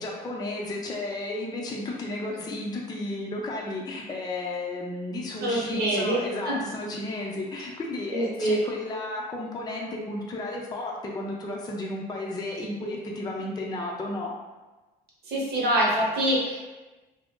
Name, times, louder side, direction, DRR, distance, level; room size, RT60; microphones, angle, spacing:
voice 1, 0.0-14.3, left 2 dB, 25° left, -2 dB, 0.5 m, -33 dB
voice 2, 5.4-6.2 6.4-6.6 8.1-8.6 15.3-16.6, right 1 dB, 70° right, -4 dB, 0.9 m, -25 dB
2.5 x 2.0 x 3.6 m, 1.2 s
cardioid pair, 110°, 17 cm